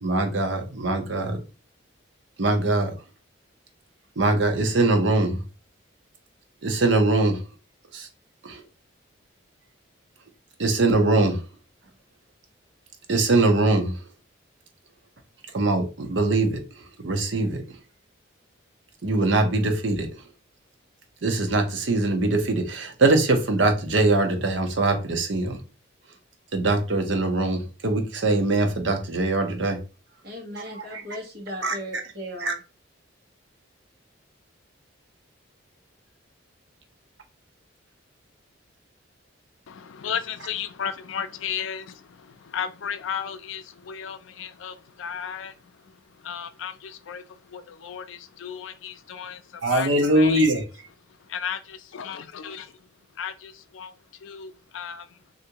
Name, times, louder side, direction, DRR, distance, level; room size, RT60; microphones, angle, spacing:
voice 1, 0.0-1.4 2.4-2.9 4.2-5.4 6.6-7.4 7.9-8.1 8.4-8.6 10.6-11.4 13.1-14.0 15.5-16.6 17.0-17.6 19.0-20.1 21.2-25.6 26.5-29.8 30.5-31.0 31.6-31.7 32.4-32.5 49.6-50.6, right 2 dB, 65° right, 0.7 m, -22 dB
voice 2, 30.2-32.6, equal, 50° right, 1.1 m, -37 dB
voice 3, 39.7-45.5 46.2-47.2 47.5-50.4 51.3-52.7 53.2-53.9 54.2-55.1, left 8 dB, 75° left, 0.4 m, -34 dB
3.4 x 2.6 x 2.8 m
head